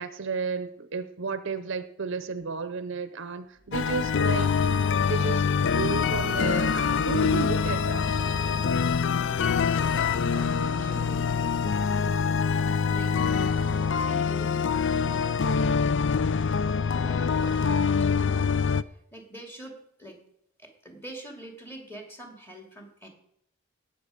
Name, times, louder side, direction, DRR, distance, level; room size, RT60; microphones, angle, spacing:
voice 1, 0.0-4.5 5.0-8.1, right 5 dB, 60° right, 12 dB, 0.7 m, -33 dB
sound 1, 3.6-17.1, right 1 dB, 20° right, 0.7 m, -47 dB
sound 2, 3.7-18.8, left 6 dB, 60° left, 0.4 m, -25 dB
voice 2, 9.5-16.1 16.9-20.2 20.6-23.1, right 1 dB, 10° left, 1 dB, 2.4 m, -46 dB
18.0 x 7.1 x 5.1 m, 0.73 s
head